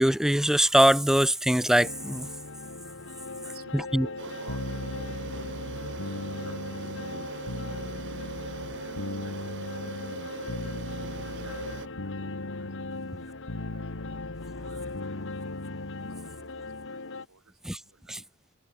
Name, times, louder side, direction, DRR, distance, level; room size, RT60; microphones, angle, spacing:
voice 1, 0.0-2.3 3.9-4.0 17.7-17.8, equal, ahead, 0.4 m, -22 dB
sound 1, 1.8-17.3, left 3 dB, 60° left, 2.1 m, -40 dB
voice 2, 3.4-7.9 8.5-9.9 11.1-12.8 13.0-13.9 14.4-15.6 16.0-17.0 17.3-18.3, right 3 dB, 75° right, 7.5 m, -54 dB
sound 2, 4.2-11.9, right 4 dB, 55° right, 1.8 m, -40 dB
sound 3, 4.5-16.3, left 2 dB, 80° left, 1.5 m, -39 dB
open air
head